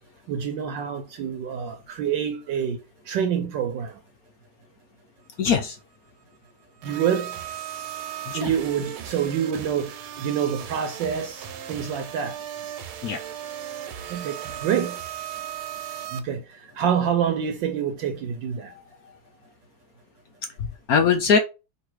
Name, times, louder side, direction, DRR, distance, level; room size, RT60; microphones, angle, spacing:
voice 1, 0.3-2.8 3.1-3.9 6.8-7.3 8.3-12.3 14.1-15.0 16.1-18.7, right 8 dB, 70° right, 1.2 m, -27 dB
voice 2, 5.4-5.8 8.3-8.5 13.0-13.2 18.7-18.8 20.6-21.4, left 6 dB, 75° left, 0.8 m, -22 dB
sound 1, 6.8-16.2, right 10 dB, 90° right, 1.6 m, -36 dB
4.0 x 2.7 x 4.6 m
omnidirectional pair, 2.2 m